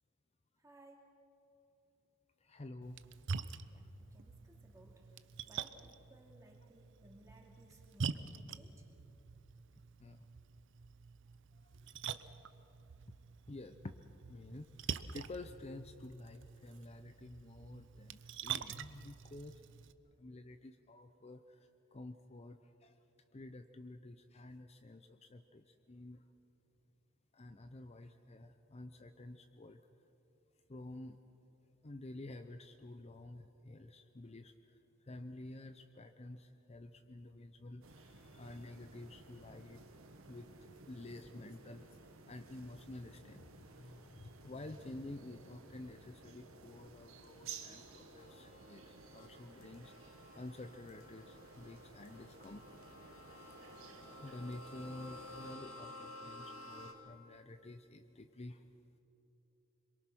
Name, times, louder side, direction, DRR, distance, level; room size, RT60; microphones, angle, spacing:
voice 1, 0.6-1.2 3.7-5.1 5.5-8.8, right 1 dB, 15° right, 0 dB, 2.8 m, -62 dB
voice 2, 2.4-3.0 10.0-10.3 13.5-14.0 14.3-19.6 20.2-21.6 21.9-22.9 23.3-26.2 27.3-29.8 30.7-31.2 31.8-34.5 35.0-39.8 40.3-40.5 40.9-41.9 42.3-49.9 50.4-52.8 53.3-53.5 54.2-58.6, left 2 dB, 30° left, 8 dB, 0.7 m, -50 dB
Splash splatter, 2.8-19.9, right 6 dB, 60° right, 0.7 m, -46 dB
sound 1, 37.8-55.6, right 4 dB, 85° right, 1.5 m, -56 dB
sound 2, 47.2-56.9, left 2 dB, 85° left, 2.3 m, -54 dB
26.0 x 23.0 x 6.2 m, 3.0 s
head